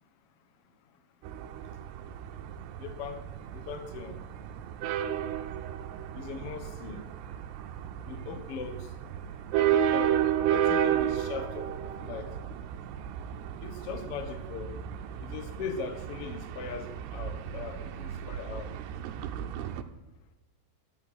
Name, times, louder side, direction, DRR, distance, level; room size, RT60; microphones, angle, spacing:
sound 1, 1.2-19.8, right 10 dB, 85° right, 2.9 m, -33 dB
voice 1, 2.8-3.2 3.5-4.2 6.1-7.1 8.0-8.9 9.5-10.2 10.5-12.3 13.6-14.7 15.2-18.7, left 6 dB, 85° left, 9 dB, 1.2 m, -39 dB
14.5 x 11.5 x 6.2 m, 1.1 s
omnidirectional pair, 4.9 m